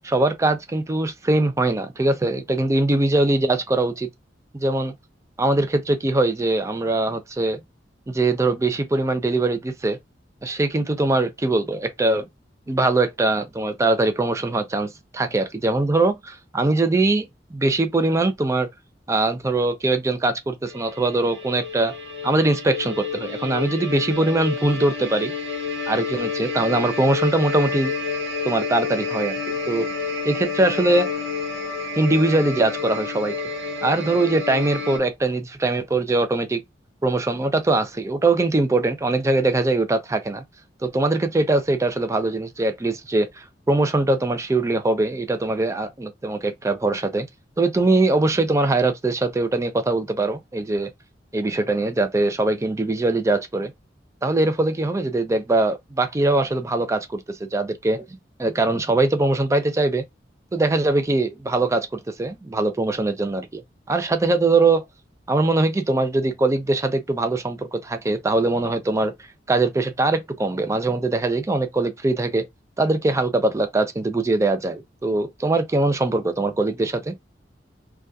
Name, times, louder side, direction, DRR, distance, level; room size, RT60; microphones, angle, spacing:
voice 1, 0.0-4.1 4.5-4.9 5.4-7.6 8.1-10.0 10.4-12.3 12.7-18.7 19.1-21.9 22.2-25.3 25.9-27.9 28.4-29.3 29.7-29.9 30.2-31.1 32.0-33.3 33.8-36.6 37.0-40.4 40.8-47.3 47.6-50.9 51.3-53.7 54.2-58.0 58.4-60.0 60.5-63.6 63.9-64.8 65.3-69.1 69.5-72.4 72.8-77.1, right 2 dB, 15° right, 0.4 m, -22 dB
sound 1, 20.7-35.0, left 4 dB, 70° right, 0.9 m, -29 dB
2.6 x 2.3 x 2.3 m
head